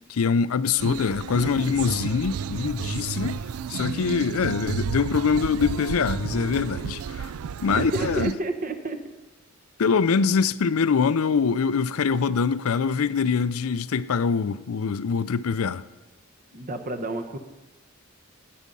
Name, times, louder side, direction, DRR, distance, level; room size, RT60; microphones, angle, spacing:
voice 1, 0.1-3.4 3.7-7.3 7.6-8.3 9.8-15.8, left 5 dB, 80° left, 0.5 m, -24 dB
sound 1, 0.8-8.3, right 7 dB, 90° right, 0.4 m, -32 dB
voice 2, 7.8-9.0 16.5-17.4, right 2 dB, 40° right, 1.0 m, -30 dB
18.5 x 8.6 x 5.4 m
head